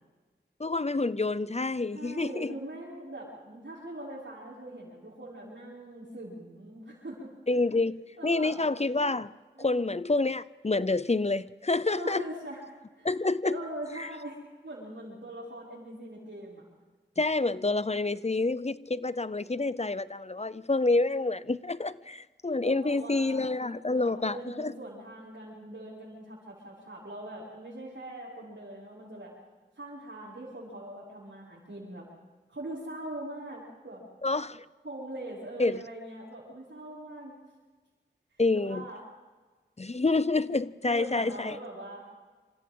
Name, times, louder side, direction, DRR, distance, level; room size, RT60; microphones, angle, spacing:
voice 1, 0.6-2.6 7.5-9.3 9.6-12.2 13.0-13.6 14.0-14.1 17.2-24.7 34.2-34.6 35.6-35.8 38.4-38.8 39.8-41.6, left 3 dB, 35° left, 0.6 m, -28 dB
voice 2, 1.9-7.3 8.2-8.6 9.5-9.9 11.9-12.6 13.0-13.1 13.4-14.4 14.6-16.6 22.6-23.5 23.9-29.3 29.7-32.1 32.5-34.0 34.8-37.3 38.5-39.0 40.8-42.0, right 1 dB, 80° right, 6.5 m, -42 dB
28.0 x 26.5 x 3.8 m
wide cardioid pair, 40°, 19 cm